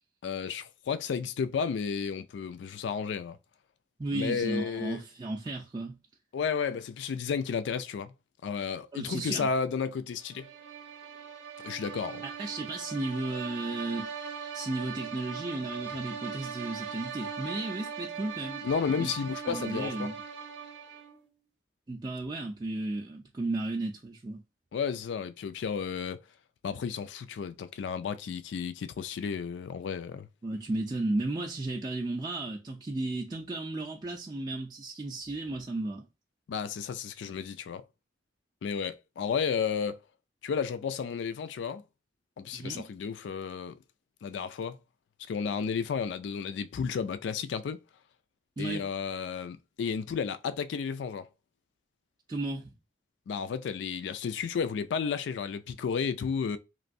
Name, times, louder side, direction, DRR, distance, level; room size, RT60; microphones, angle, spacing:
voice 1, 0.2-3.4 4.1-5.0 6.3-8.1 8.4-10.5 11.6-12.2 18.6-20.1 24.7-26.2 26.6-30.3 36.5-37.8 38.6-40.0 40.4-41.8 42.4-43.7 44.2-44.8 45.3-47.8 48.6-51.3 53.3-56.6, left 6 dB, 80° left, 0.3 m, -32 dB
voice 2, 4.0-6.0 8.9-9.5 12.2-14.1 14.5-18.6 19.0-19.1 19.4-20.1 21.9-24.4 30.4-36.1 42.5-42.9 48.6-48.8 52.3-52.7, right 2 dB, 25° right, 0.4 m, -34 dB
sound 1, 10.3-21.2, right 6 dB, 90° right, 0.7 m, -40 dB
3.1 x 2.5 x 2.6 m
head